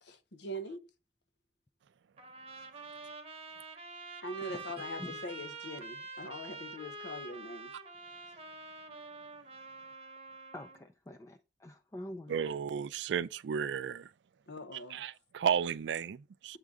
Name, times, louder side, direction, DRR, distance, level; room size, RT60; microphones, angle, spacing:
voice 1, 0.0-0.9 4.2-7.7 14.5-15.0, equal, 80° left, 0.8 m, -42 dB
Trumpet, 2.2-10.8, right 3 dB, 35° right, 0.9 m, -46 dB
voice 2, 10.5-12.4, left 1 dB, 15° left, 0.4 m, -46 dB
voice 3, 12.3-14.1 14.9-16.6, right 7 dB, 90° right, 0.3 m, -33 dB
8.1 x 3.7 x 3.5 m
head